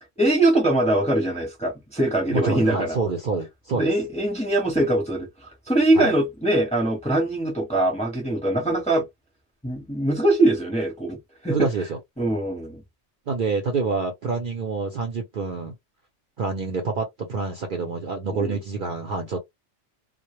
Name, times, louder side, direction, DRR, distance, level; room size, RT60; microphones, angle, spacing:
voice 1, 0.2-3.0 3.7-5.3 5.7-9.1 9.6-11.2 11.4-11.7 12.2-12.8 18.3-18.6, right 1 dB, 5° left, 0.7 m, -22 dB
voice 2, 2.3-3.9 6.0-6.1 8.6-8.7 11.5-12.0 13.3-15.8 16.4-19.4, right 4 dB, 55° right, 0.6 m, -27 dB
2.0 x 2.0 x 2.9 m
omnidirectional pair, 1.2 m